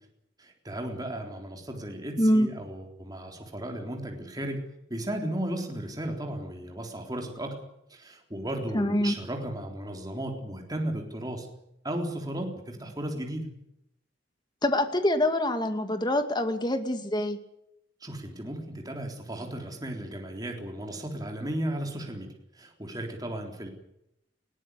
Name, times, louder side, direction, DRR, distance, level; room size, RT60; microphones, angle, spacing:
voice 1, 0.4-4.6 4.9-7.5 7.9-11.5 11.8-13.5 18.0-23.7, right 1 dB, 20° right, 2 dB, 3.8 m, -35 dB
voice 2, 2.2-2.5 8.7-9.1 14.6-17.4, left 1 dB, 25° left, 7 dB, 2.3 m, -25 dB
21.0 x 17.5 x 9.9 m, 0.80 s
head